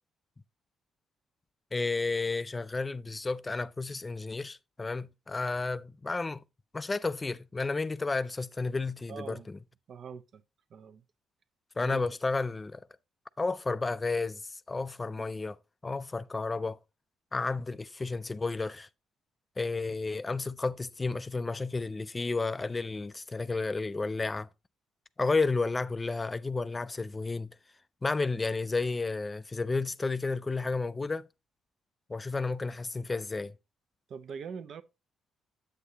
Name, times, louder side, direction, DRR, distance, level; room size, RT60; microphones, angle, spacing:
voice 1, 1.7-6.4 6.7-9.6 11.8-12.9 13.4-15.6 15.8-16.8 17.3-18.9 19.6-24.5 25.2-27.6 28.0-31.3 32.1-33.5, left 3 dB, 20° left, 0.3 m, -32 dB
voice 2, 9.1-9.5 9.9-10.4 10.7-11.0 11.8-12.0 34.1-34.8, right 6 dB, 60° right, 0.6 m, -42 dB
8.2 x 8.0 x 2.8 m
cardioid pair, 95°, 0 cm